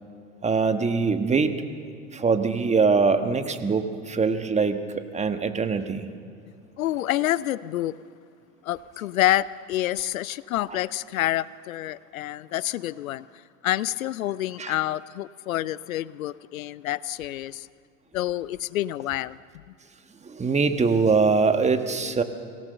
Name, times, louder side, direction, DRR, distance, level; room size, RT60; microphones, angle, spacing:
voice 1, 0.4-1.5 2.1-6.1 10.7-10.8 14.6-14.8 20.2-22.2, right 4 dB, 15° right, 8 dB, 1.4 m, -23 dB
voice 2, 6.8-8.0 8.6-13.3 13.6-17.7 18.1-19.4, left 14 dB, 80° left, 20 dB, 0.6 m, -28 dB
24.5 x 17.0 x 6.7 m, 2.4 s
hypercardioid pair, 90°, 40 cm